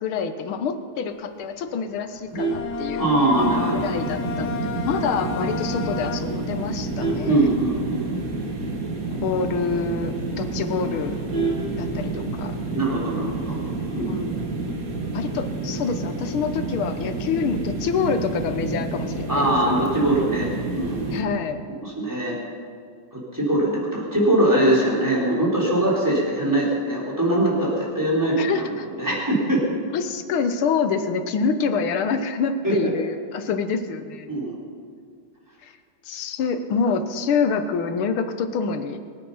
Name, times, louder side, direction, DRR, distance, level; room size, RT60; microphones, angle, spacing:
voice 1, 0.0-3.1 3.7-7.5 9.1-11.2 11.8-12.6 13.9-14.4 15.1-19.5 21.1-21.6 28.4-28.9 29.9-34.3 35.6-35.7 36.1-39.0, left 5 dB, 90° left, 9 dB, 1.8 m, -26 dB
Vehicle horn car horn honking, 2.1-3.6 4.0-4.3 4.6-4.7 5.1-5.2 5.5-5.9 6.4-8.3 8.6-8.7 9.0-9.1 9.5-9.6 10.0-10.1 10.3-12.4 13.6-14.0, right 3 dB, 75° right, 3.4 m, -30 dB
Bowed string instrument, 2.4-6.6, left 4 dB, 60° left, 1.3 m, -32 dB
voice 2, 3.0-3.9 7.2-8.0 12.7-13.5 13.9-14.3 19.3-21.2 21.8-22.4 23.1-29.6 32.6-32.9 34.3-34.6, right 1 dB, 10° right, -5 dB, 4.1 m, -22 dB
sound 1, 3.3-21.2, right 3 dB, 45° right, 1.8 m, -30 dB
23.0 x 9.4 x 5.7 m, 2.1 s
omnidirectional pair, 2.2 m